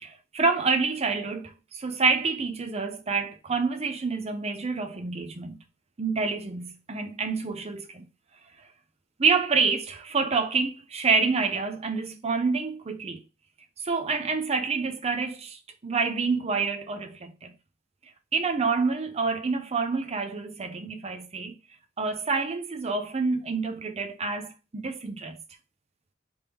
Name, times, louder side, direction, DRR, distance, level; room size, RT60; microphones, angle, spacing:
voice 1, 0.0-5.6 6.0-8.1 9.2-13.2 13.8-17.5 18.3-21.5 22.0-25.4, right 4 dB, 30° right, 0.6 m, -27 dB
3.5 x 3.4 x 2.9 m
head